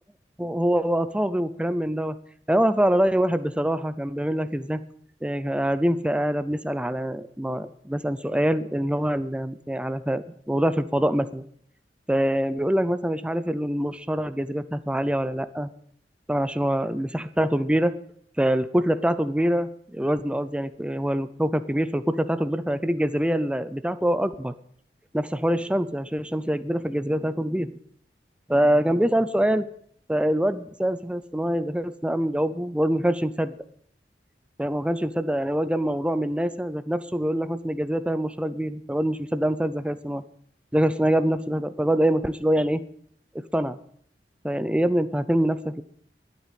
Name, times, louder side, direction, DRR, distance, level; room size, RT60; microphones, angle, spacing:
voice 1, 0.4-2.2 2.5-4.8 5.2-11.5 12.1-15.7 16.3-17.9 18.4-24.5 25.1-27.7 28.5-29.7 30.1-33.5 34.6-40.2 40.7-42.8 43.5-43.8 44.4-45.8, equal, 5° right, 12 dB, 0.6 m, -24 dB
12.0 x 8.3 x 7.5 m, 0.63 s
head